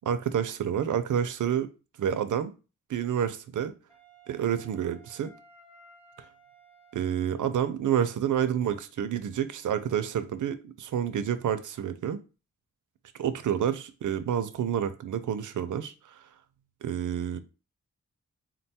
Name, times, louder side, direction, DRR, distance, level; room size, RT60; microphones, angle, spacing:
voice 1, 0.0-1.7 2.0-2.5 2.9-3.7 4.3-5.3 6.9-12.2 13.2-16.2 16.8-17.4, right 9 dB, 80° right, 0.5 m, -29 dB
Wind instrument woodwind instrument, 3.9-7.7, right 3 dB, 50° left, 0.9 m, -56 dB
3.9 x 2.2 x 4.1 m
wide cardioid pair, 95°, 30 cm